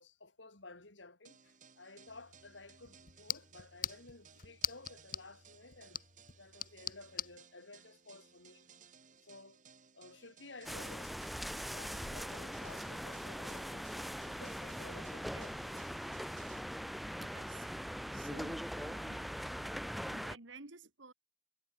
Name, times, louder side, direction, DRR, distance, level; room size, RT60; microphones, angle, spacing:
voice 1, 0.0-6.0 6.3-8.7 9.2-9.6 9.9-15.8, left 3 dB, 75° left, 3.5 m, -55 dB
sound 1, 1.2-16.6, right 7 dB, 40° right, 1.6 m, -62 dB
sound 2, 2.1-7.4, left 11 dB, 45° left, 1.2 m, -44 dB
sound 3, 10.6-20.4, equal, ahead, 0.6 m, -41 dB
voice 2, 17.2-17.8 18.1-19.2 20.1-21.1, right 3 dB, 80° right, 2.1 m, -53 dB
head